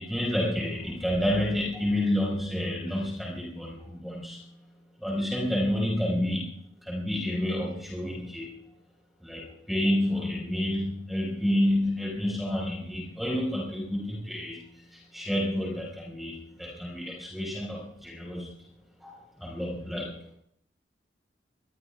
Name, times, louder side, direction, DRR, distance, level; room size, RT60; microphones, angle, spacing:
voice 1, 0.0-4.5 5.0-8.6 9.2-14.6 14.9-18.6 19.0-19.1 19.4-20.2, left 1 dB, ahead, -4 dB, 4.9 m, -29 dB
24.5 x 22.5 x 2.3 m, 0.68 s
head